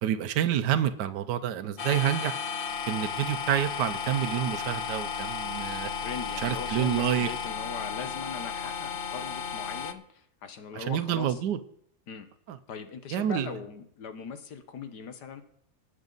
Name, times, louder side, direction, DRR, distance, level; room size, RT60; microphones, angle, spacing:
voice 1, 0.0-2.3 2.9-5.9 6.4-7.3 10.7-11.6 12.5-12.6 13.1-13.5, right 10 dB, 85° right, 10 dB, 1.3 m, -28 dB
sound 1, 1.8-9.9, left 6 dB, 50° left, 0.7 m, -34 dB
voice 2, 5.7-11.4 12.1-12.3 12.7-15.4, left 6 dB, 80° left, 9 dB, 1.7 m, -40 dB
19.5 x 7.1 x 4.0 m, 0.69 s
omnidirectional pair, 1.8 m